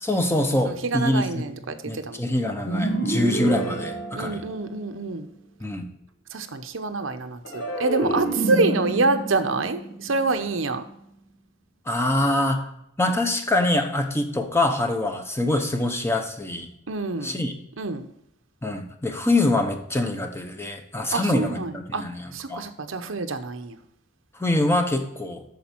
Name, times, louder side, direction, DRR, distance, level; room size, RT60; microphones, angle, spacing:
voice 1, 0.0-1.4 1.9-4.4 5.6-5.9 8.1-8.2 11.9-12.7 13.0-16.7 17.2-17.5 18.6-22.7 24.4-25.4, left 1 dB, 15° left, 5 dB, 1.0 m, -24 dB
voice 2, 0.6-2.3 2.6-2.9 4.1-5.3 6.3-10.8 16.9-17.4 17.8-18.1 21.1-22.1 22.3-23.8, right 3 dB, 85° right, 8 dB, 0.9 m, -27 dB
sound 1, 2.6-5.0 7.4-10.8, right 2 dB, 70° left, 2.1 m, -29 dB
8.7 x 6.5 x 4.5 m, 0.78 s
head